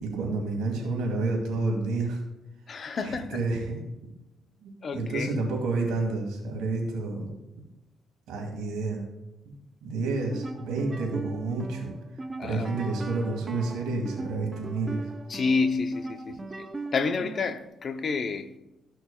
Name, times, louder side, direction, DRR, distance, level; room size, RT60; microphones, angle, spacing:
voice 1, 0.0-2.2 3.0-3.8 4.6-7.3 8.3-9.0 9.5-11.9 12.4-15.0, right 3 dB, 90° right, 2.1 m, -30 dB
voice 2, 2.7-3.4 4.8-5.4 12.4-12.7 15.3-16.6 16.9-18.5, left 4 dB, 45° left, 0.7 m, -29 dB
sound 1, 10.2-17.7, right 3 dB, 20° right, 0.6 m, -39 dB
13.5 x 6.1 x 2.3 m
cardioid pair, 90°, 0 cm